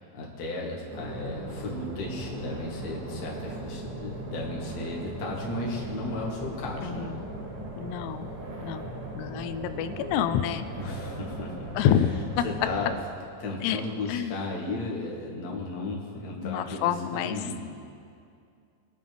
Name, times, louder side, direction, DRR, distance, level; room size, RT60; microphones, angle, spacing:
voice 1, 0.1-7.1 10.8-11.7 12.4-12.9 13.4-17.7, left 2 dB, 50° left, -3 dB, 1.1 m, -35 dB
sound 1, 0.9-12.9, right 1 dB, 70° right, 4.4 m, -38 dB
voice 2, 6.8-7.3 7.8-8.3 8.6-10.7 11.8-12.4 13.6-13.8 14.1-14.4 16.4-17.4, left 9 dB, 85° left, 10 dB, 2.7 m, -28 dB
23.0 x 9.5 x 3.5 m, 2.4 s
omnidirectional pair, 4.8 m